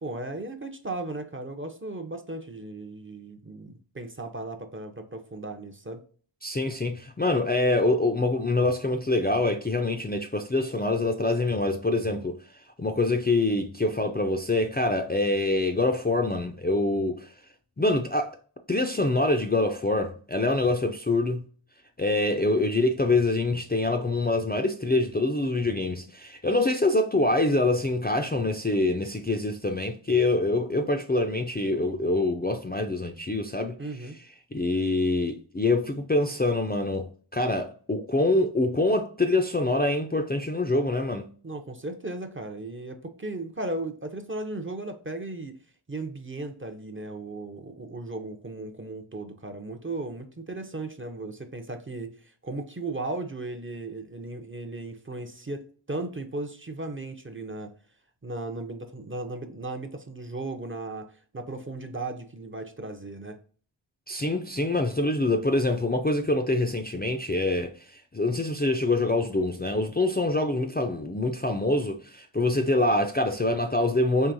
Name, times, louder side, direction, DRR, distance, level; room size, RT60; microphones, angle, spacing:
voice 1, 0.0-6.0 33.8-34.2 41.4-45.5 45.9-57.7 58.2-63.4, right 2 dB, 25° right, 0.6 m, -36 dB
voice 2, 6.4-12.4 12.8-17.3 17.8-18.4 18.7-21.4 22.0-33.8 34.5-41.3 64.1-74.3, left 2 dB, 20° left, 0.4 m, -25 dB
4.6 x 3.0 x 2.6 m
wide cardioid pair, 45°, 47 cm